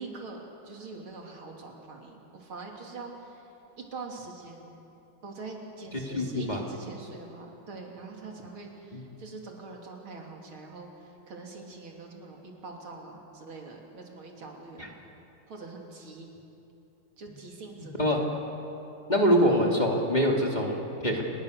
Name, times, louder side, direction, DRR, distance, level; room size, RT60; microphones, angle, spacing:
voice 1, 0.0-3.4 3.8-4.7 5.2-10.9 11.3-15.0 15.5-16.3 17.2-18.1, right 3 dB, 85° right, 0 dB, 3.6 m, -43 dB
voice 2, 5.9-6.6 8.9-9.0 14.8-14.9 17.8-18.2 19.1-21.2, equal, 20° left, -1 dB, 2.8 m, -25 dB
29.0 x 20.5 x 6.6 m, 2.9 s
omnidirectional pair, 2.2 m